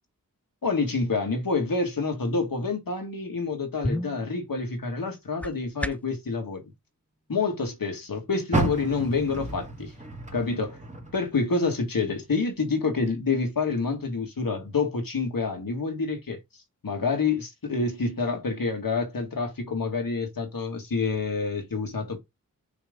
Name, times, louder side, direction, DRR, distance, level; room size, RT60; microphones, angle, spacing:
voice 1, 0.6-6.6 7.3-9.9 10.3-10.8 11.1-16.4 16.8-22.2, left 4 dB, 80° left, 2.0 m, -27 dB
sound 1, 3.4-6.2, left 1 dB, 5° left, 0.3 m, -34 dB
Car, 8.5-11.8 12.2-13.5 14.0-14.1 14.7-14.8, right 2 dB, 20° right, 1.8 m, -32 dB
5.9 x 3.3 x 5.2 m
wide cardioid pair, 80°, 34 cm